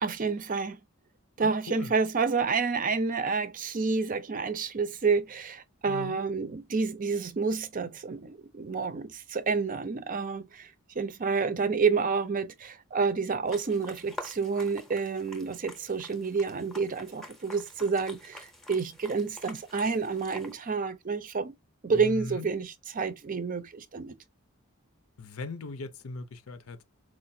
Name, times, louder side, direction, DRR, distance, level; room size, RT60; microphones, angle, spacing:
voice 1, 0.0-0.8 1.4-21.5 21.8-24.2, right 5 dB, 40° right, 0.5 m, -29 dB
voice 2, 1.4-1.9 5.9-6.2 21.9-22.5 25.2-26.8, left 3 dB, 80° left, 0.7 m, -39 dB
sound 1, 13.5-20.5, left 1 dB, ahead, 0.7 m, -47 dB
4.4 x 2.5 x 2.6 m
head